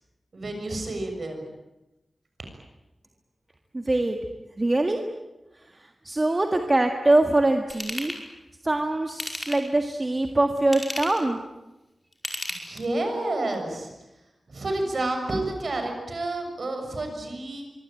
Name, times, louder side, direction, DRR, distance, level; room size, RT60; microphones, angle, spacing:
voice 1, 0.3-1.4 12.5-13.9 14.5-17.7, right 2 dB, 50° right, 4 dB, 7.0 m, -30 dB
voice 2, 3.7-4.2 4.6-5.0 5.7-8.1 8.6-11.4, right 2 dB, 25° right, 5 dB, 1.8 m, -23 dB
Ratchet pawl / Tools, 7.7-8.2 9.1-9.8 10.6-11.3 12.1-13.0 13.5-13.6, left 1 dB, 10° left, 5.2 m, -33 dB
25.0 x 24.5 x 9.1 m, 1.0 s
wide cardioid pair, 130°, 0 cm